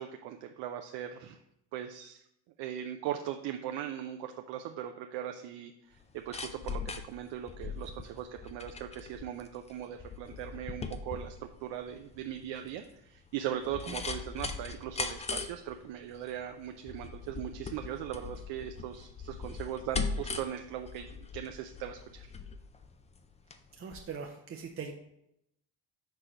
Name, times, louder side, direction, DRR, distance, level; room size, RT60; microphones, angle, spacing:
voice 1, 0.0-1.4 1.7-2.2 2.6-6.8 7.1-21.1 21.3-22.3, right 10 dB, 70° right, 5 dB, 0.6 m, -39 dB
sound 1, 6.0-23.6 23.9-24.0, left 4 dB, 15° left, 0.4 m, -40 dB
voice 2, 23.8-24.9, right 6 dB, 30° right, 2 dB, 0.5 m, -41 dB
6.0 x 3.2 x 5.5 m, 0.80 s
cardioid pair, 100°, 45 cm